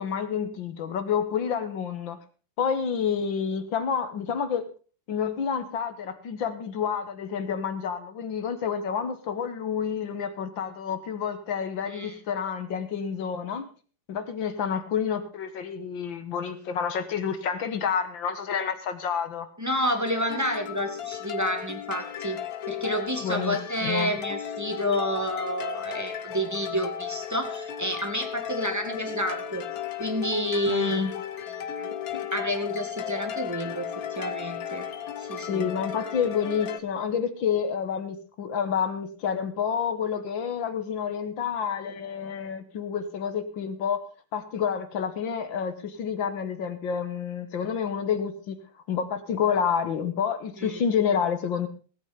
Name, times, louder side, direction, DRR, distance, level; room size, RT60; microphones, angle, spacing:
voice 1, 0.0-2.2 2.6-4.7 5.1-13.7 14.1-19.5 23.2-24.1 30.7-31.1 35.5-44.0 44.3-48.6 48.9-51.7, left 7 dB, 70° left, 10 dB, 2.0 m, -29 dB
voice 2, 19.6-22.4 22.7-29.7 30.0-31.1 31.8-31.9 32.3-34.9 35.2-35.7 50.6-50.8, equal, 10° right, 5 dB, 1.8 m, -29 dB
sound 1, 20.1-36.8, left 9 dB, 55° left, 1.2 m, -35 dB
17.5 x 8.7 x 5.2 m, 0.38 s
omnidirectional pair, 2.2 m